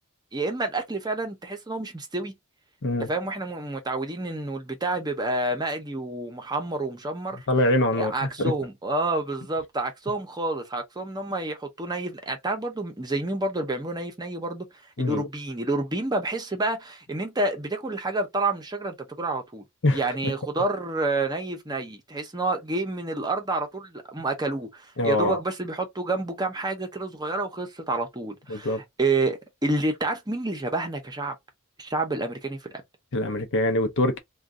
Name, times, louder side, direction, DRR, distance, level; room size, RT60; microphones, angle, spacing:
voice 1, 0.3-2.3 3.0-7.5 7.9-14.7 15.0-19.6 19.9-31.3 31.8-32.8, right 2 dB, 20° right, 0.7 m, -29 dB
voice 2, 7.5-8.5 15.0-15.3 19.8-20.3 25.0-25.4 28.5-28.8 33.1-34.2, left 1 dB, 60° left, 0.7 m, -24 dB
2.5 x 2.3 x 3.6 m
head